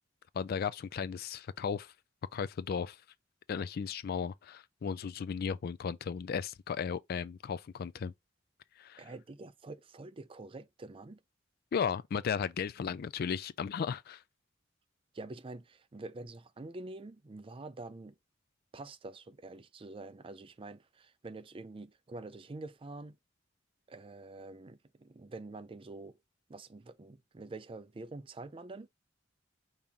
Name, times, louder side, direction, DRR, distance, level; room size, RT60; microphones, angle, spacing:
voice 1, 0.3-1.9 2.3-3.0 3.5-8.1 8.8-9.1 11.7-14.2, left 6 dB, 50° left, 0.3 m, -35 dB
voice 2, 9.0-11.2 15.1-18.2 18.7-23.2 23.9-26.2 26.5-28.9, right 2 dB, 30° right, 0.4 m, -46 dB
5.3 x 2.8 x 3.5 m
head